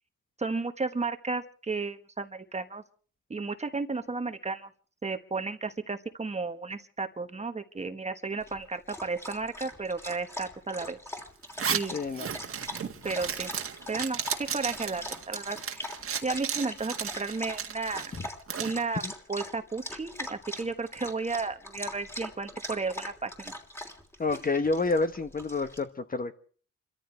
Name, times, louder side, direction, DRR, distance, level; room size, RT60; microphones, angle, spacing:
voice 1, 0.4-2.8 3.3-4.7 5.0-11.0 11.7-12.0 13.0-13.5 13.9-15.9 16.2-18.1 18.6-19.0 19.3-23.5, right 3 dB, 20° right, 1.4 m, -33 dB
Dog, 8.4-25.8, left 1 dB, 10° left, 3.2 m, -42 dB
Zipper (clothing), 11.4-18.8, right 7 dB, 45° right, 1.8 m, -34 dB
voice 2, 11.9-12.3 18.2-18.3 19.0-19.1 24.2-26.3, left 3 dB, 30° left, 1.3 m, -29 dB
29.5 x 14.0 x 3.4 m
cardioid pair, 90°, 30 cm